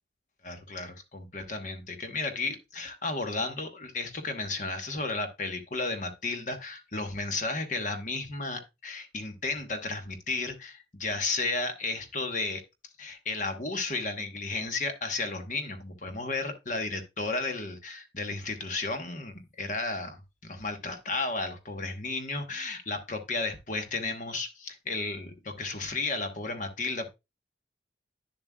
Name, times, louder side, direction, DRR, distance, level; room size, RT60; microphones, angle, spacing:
voice 1, 0.4-12.6 13.0-27.1, left 3 dB, 40° left, 1.1 m, -33 dB
9.8 x 7.3 x 2.3 m
head